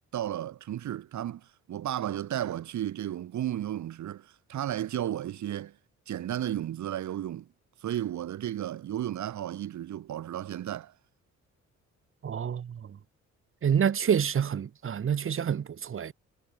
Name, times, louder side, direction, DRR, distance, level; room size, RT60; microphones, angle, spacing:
voice 1, 0.1-5.7 6.1-7.5 7.8-10.9, right 11 dB, 70° right, 2.8 m, -33 dB
voice 2, 12.2-13.0 13.6-16.1, right 8 dB, 45° right, 1.3 m, -28 dB
cardioid pair, 90°, 30 cm